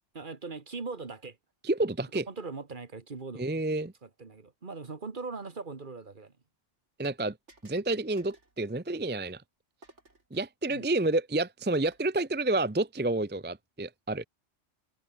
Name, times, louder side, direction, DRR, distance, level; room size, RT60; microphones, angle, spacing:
voice 1, 0.1-1.4 2.1-3.5 4.0-6.3 10.7-10.9, right 4 dB, 45° right, 1.7 m, -40 dB
voice 2, 1.6-2.3 3.4-3.9 7.0-7.4 7.6-9.4 10.3-14.3, right 2 dB, 10° right, 0.6 m, -29 dB
sound 1, 7.0-7.2 7.5-7.9 8.2-8.6 9.8-10.3 11.7-12.1, right 2 dB, 70° right, 4.7 m, -56 dB
omnidirectional pair, 1.3 m